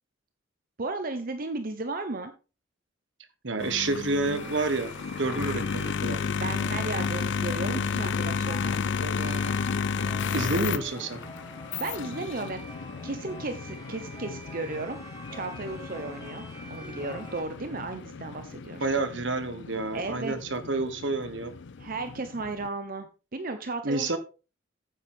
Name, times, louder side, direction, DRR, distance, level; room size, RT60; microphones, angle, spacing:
voice 1, 0.8-2.3 6.4-9.6 11.7-12.6 13.0-15.0 15.3-18.9 19.9-20.3 21.8-24.2, right 3 dB, 45° right, 8 dB, 0.9 m, -35 dB
voice 2, 3.4-6.2 10.3-11.2 18.8-21.5 23.8-24.2, right 3 dB, 65° right, 9 dB, 1.4 m, -29 dB
sound 1, 3.6-22.7, left 6 dB, 65° left, 0.5 m, -33 dB
sound 2, 4.3-17.4, left 1 dB, 20° left, 3.5 m, -45 dB
9.5 x 8.7 x 3.6 m, 0.32 s
head